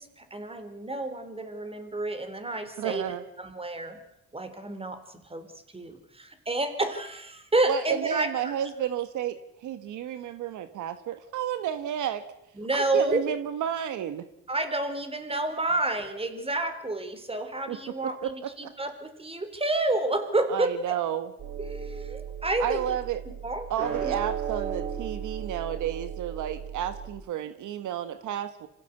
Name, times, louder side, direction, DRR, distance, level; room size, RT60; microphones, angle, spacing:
voice 1, 0.0-3.1 3.4-4.0 4.3-5.5 5.7-8.5 12.6-13.2 14.5-21.0 21.6-22.8 23.4-24.1, right 2 dB, 20° right, 9 dB, 3.9 m, -30 dB
voice 2, 2.8-3.2 7.7-12.2 12.7-14.3 17.7-17.8 18.0-18.7 20.5-21.3 22.6-23.2 23.7-28.7, right 10 dB, 80° right, 11 dB, 1.4 m, -31 dB
sound 1, 21.4-27.1, right 8 dB, 50° right, 7.2 m, -35 dB
26.0 x 16.0 x 8.2 m, 0.85 s
cardioid pair, 90°, 30 cm